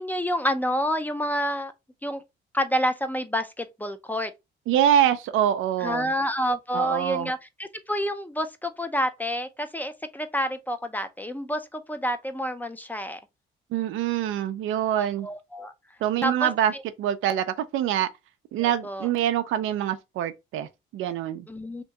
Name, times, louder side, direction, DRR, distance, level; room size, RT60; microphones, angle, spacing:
voice 1, 0.0-1.7 2.0-2.2 2.5-4.3 5.8-13.2 14.9-15.7 16.2-16.8 18.6-19.1 21.5-21.8, equal, 10° left, 0.5 m, -29 dB
voice 2, 4.7-6.1 6.7-7.3 13.7-15.3 16.0-16.7 17.0-18.1 18.5-21.5, right 10 dB, 85° right, 0.5 m, -25 dB
2.9 x 2.7 x 3.3 m
cardioid pair, 90°, 20 cm